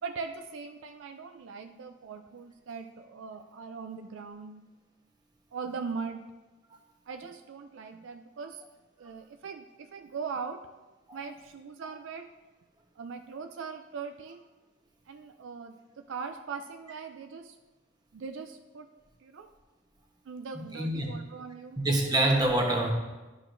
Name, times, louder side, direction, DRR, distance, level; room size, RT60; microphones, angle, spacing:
voice 1, 0.0-4.6 5.5-6.2 7.1-8.6 9.0-10.6 11.1-12.3 13.0-14.4 15.1-17.6 18.1-18.9 19.2-19.5 20.3-21.8, right 5 dB, 65° right, 6 dB, 0.4 m, -40 dB
voice 2, 20.5-21.1 21.8-22.9, right 1 dB, 20° right, 0 dB, 1.0 m, -26 dB
11.5 x 6.4 x 2.6 m, 1.2 s
head